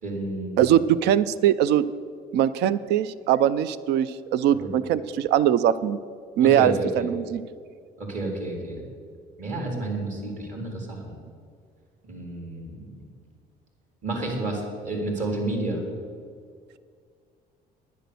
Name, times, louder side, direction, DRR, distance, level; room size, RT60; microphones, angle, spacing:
voice 1, 0.0-0.6 4.6-4.7 6.4-7.1 8.0-8.8 9.4-11.2 12.0-13.1 14.0-15.8, right 2 dB, 50° right, 0 dB, 3.8 m, -30 dB
voice 2, 0.6-1.8 2.3-6.0 6.4-7.4, right 10 dB, 80° right, 16 dB, 0.5 m, -21 dB
10.5 x 10.0 x 6.9 m, 2.1 s
cardioid pair, 110°, 17 cm